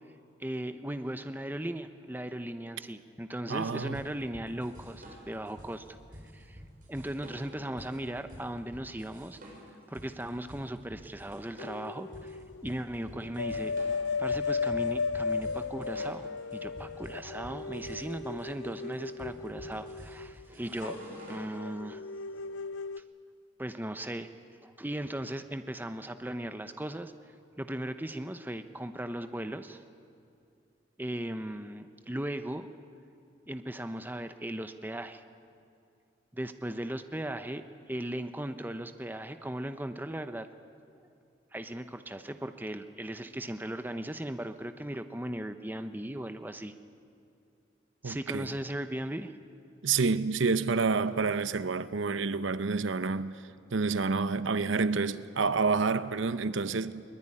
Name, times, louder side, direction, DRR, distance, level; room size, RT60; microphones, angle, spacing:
voice 1, 0.4-6.0 6.2-6.6 6.9-9.4 9.9-13.7 14.2-22.0 23.6-24.3 24.6-27.1 27.6-29.8 31.0-32.7 33.5-35.2 36.3-37.6 37.9-40.5 41.5-46.7 48.0-49.3, right 1 dB, 10° right, 0.7 m, -37 dB
voice 2, 3.5-4.0 48.0-48.5 49.8-53.3 53.7-57.0, right 4 dB, 80° right, 0.8 m, -28 dB
sound 1, 3.9-21.5, equal, 45° right, 6.5 m, -49 dB
sound 2, 11.6-12.7 13.0-23.0, left 4 dB, 75° left, 0.5 m, -35 dB
22.5 x 19.5 x 10.0 m
head